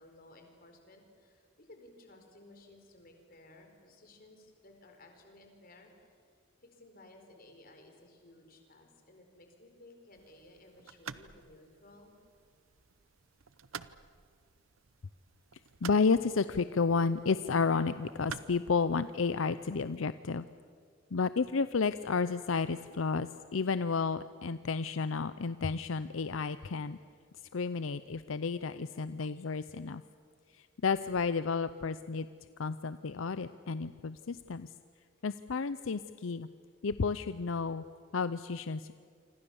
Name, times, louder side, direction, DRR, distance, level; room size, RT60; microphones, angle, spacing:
voice 1, 0.0-5.9 6.6-12.2, left 2 dB, 45° left, 4 dB, 4.4 m, -57 dB
sound 1, 10.1-20.0, right 7 dB, 85° right, 0.8 m, -51 dB
voice 2, 15.8-20.5 21.1-27.0 27.5-30.0 30.8-32.3 32.6-34.7 35.2-36.5 36.8-37.8 38.1-38.9, left 4 dB, 80° left, 13 dB, 0.6 m, -31 dB
27.5 x 25.5 x 7.1 m, 2.1 s
head